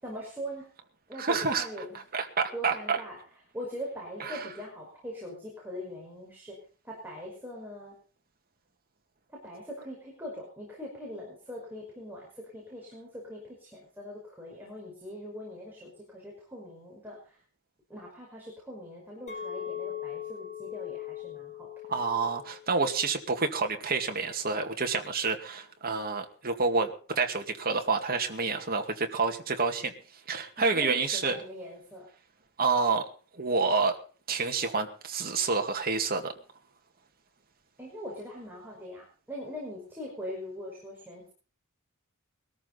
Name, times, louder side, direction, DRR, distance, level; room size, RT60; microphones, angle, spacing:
voice 1, 0.0-0.7 1.1-2.0 2.5-3.2 3.5-8.0 9.3-17.4 17.9-22.0 30.6-32.1 37.8-41.3, equal, 10° right, -2 dB, 5.3 m, -42 dB
voice 2, 1.2-1.7 2.1-3.0 4.3-4.4 21.9-29.9 30.3-31.4 32.6-33.0 33.3-34.0 34.3-36.3, right 4 dB, 45° right, 4 dB, 2.2 m, -28 dB
Chink clink, 19.3-23.6 24.0-24.4, left 10 dB, 30° left, 3.5 m, -41 dB
21.5 x 13.5 x 4.1 m, 0.38 s
head